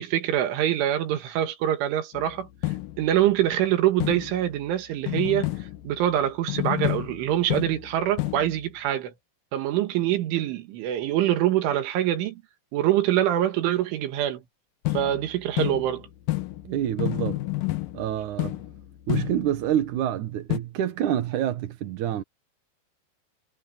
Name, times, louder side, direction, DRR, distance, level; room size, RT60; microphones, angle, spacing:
voice 1, 0.0-2.5 3.0-5.5 5.9-9.1 9.5-12.4 12.7-14.4 14.9-16.1, right 12 dB, 90° right, 4.3 m, -24 dB
sound 1, 2.1-3.4 4.0-4.7 5.1-6.2 6.5-8.6 14.8-19.7 20.5-20.6, left 19 dB, 90° left, 1.9 m, -30 dB
voice 2, 16.6-17.4 17.9-18.6 19.1-22.2, right 11 dB, 75° right, 1.8 m, -27 dB
omnidirectional pair, 5.4 m